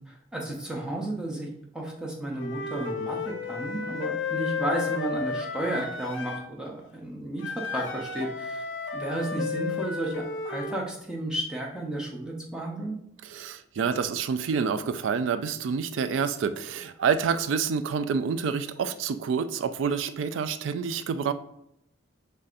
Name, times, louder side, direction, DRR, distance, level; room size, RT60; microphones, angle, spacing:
voice 1, 0.3-8.6 8.9-10.1 10.4-13.0, right 1 dB, 5° right, -2 dB, 0.7 m, -33 dB
Wind instrument woodwind instrument, 2.4-6.5 7.4-10.8, left 5 dB, 80° left, 0.5 m, -33 dB
voice 2, 13.2-21.3, right 6 dB, 75° right, 12 dB, 0.3 m, -28 dB
5.4 x 3.3 x 2.5 m, 0.76 s
head